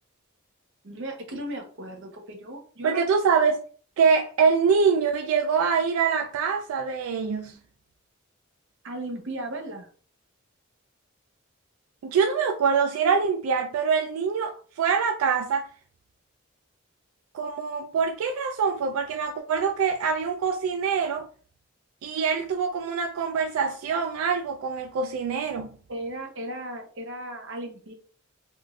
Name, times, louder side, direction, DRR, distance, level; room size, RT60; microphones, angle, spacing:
voice 1, 0.8-3.1 8.8-9.9 25.9-27.9, right 1 dB, 60° right, 0.8 m, -36 dB
voice 2, 2.8-3.6 4.0-7.5 12.0-15.7 17.3-21.3 22.0-25.7, right 6 dB, 85° right, 0.3 m, -24 dB
3.6 x 2.5 x 2.3 m
head